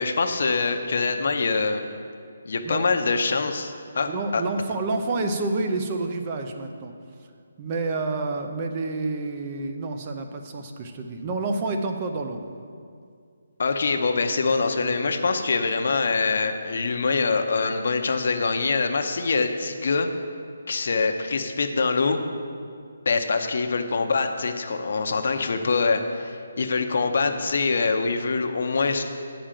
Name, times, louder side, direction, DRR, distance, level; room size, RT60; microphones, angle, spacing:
voice 1, 0.0-1.8 2.5-4.4 13.6-20.1 20.7-22.2 23.1-29.0, left 4 dB, 50° left, 5 dB, 0.7 m, -24 dB
voice 2, 4.1-6.9 7.6-12.4, right 3 dB, 20° right, 5 dB, 0.5 m, -28 dB
8.7 x 5.0 x 7.4 m, 2.2 s
hypercardioid pair, 175°, 0 cm